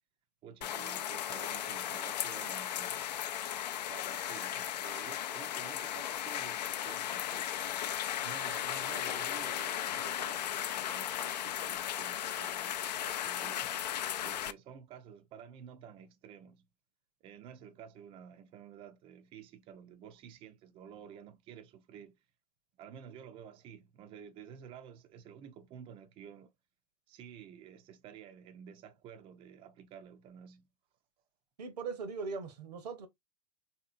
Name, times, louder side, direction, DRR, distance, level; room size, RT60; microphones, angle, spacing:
voice 1, 0.4-3.3 3.9-7.5 8.2-13.7 14.2-16.6 17.2-22.2 22.8-26.5 27.1-30.7, right 8 dB, 25° right, 0.4 m, -51 dB
sound 1, 0.6-14.5, left 11 dB, 80° left, 0.4 m, -36 dB
voice 2, 31.6-33.1, right 4 dB, 75° right, 0.8 m, -39 dB
3.2 x 2.8 x 2.4 m
hypercardioid pair, 105°, 21 cm